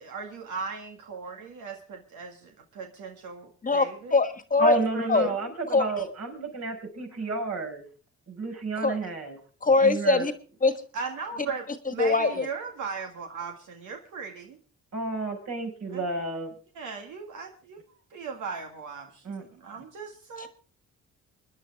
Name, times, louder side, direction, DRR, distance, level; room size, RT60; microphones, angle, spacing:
voice 1, 0.0-4.2 4.9-5.4 10.9-11.6 11.9-14.6 15.9-16.2 16.8-17.8 18.1-19.2 19.5-20.5, right 5 dB, 80° right, 2 dB, 2.0 m, -37 dB
voice 2, 3.6-4.7 5.1-5.3 5.7-5.9 8.8-9.0 9.6-10.3 10.6-10.7 12.0-12.4 20.4-20.5, left 3 dB, 25° left, 10 dB, 1.5 m, -22 dB
voice 3, 4.6-7.8 8.3-9.4 9.7-10.3 14.9-16.5 19.2-19.4 19.8-19.9, right 3 dB, 60° right, 2 dB, 5.7 m, -31 dB
26.0 x 10.5 x 3.5 m, 0.39 s
cardioid pair, 90°, 30 cm